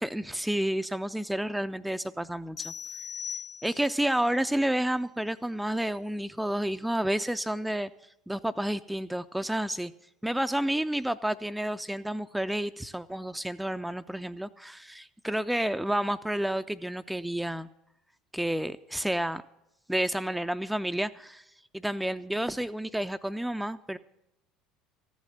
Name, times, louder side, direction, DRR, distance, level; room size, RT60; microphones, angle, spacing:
voice 1, 0.0-2.7 3.6-7.9 8.3-9.9 10.2-17.7 18.3-19.4 19.9-21.4 21.7-24.0, right 1 dB, 5° right, 10 dB, 0.4 m, -30 dB
sound 1, 2.6-4.1, left 7 dB, 55° left, 1.8 m, -39 dB
14.0 x 7.4 x 8.6 m, 0.86 s
hypercardioid pair, 70°, 0 cm